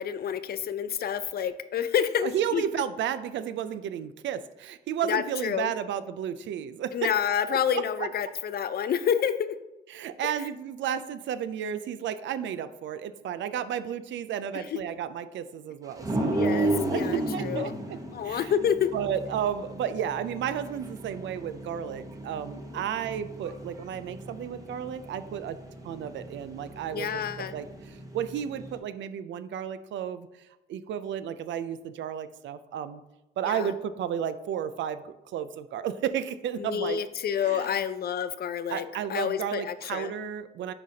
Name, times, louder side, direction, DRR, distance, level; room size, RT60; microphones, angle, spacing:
voice 1, 0.0-2.6 5.1-5.7 6.9-9.6 16.3-17.7 18.1-19.0 26.9-27.5 33.5-33.7 36.6-38.8 39.1-40.1, left 8 dB, 50° left, 12 dB, 0.5 m, -28 dB
voice 2, 2.2-7.1 7.5-8.3 9.9-18.0 18.2-25.6 25.8-33.0 33.4-37.0 37.4-37.8 38.7-40.7, right 9 dB, 70° right, 13 dB, 0.5 m, -33 dB
sound 1, 16.0-28.8, right 2 dB, 15° right, 0.9 m, -34 dB
9.8 x 4.0 x 2.8 m, 0.99 s
cardioid pair, 90°, 20 cm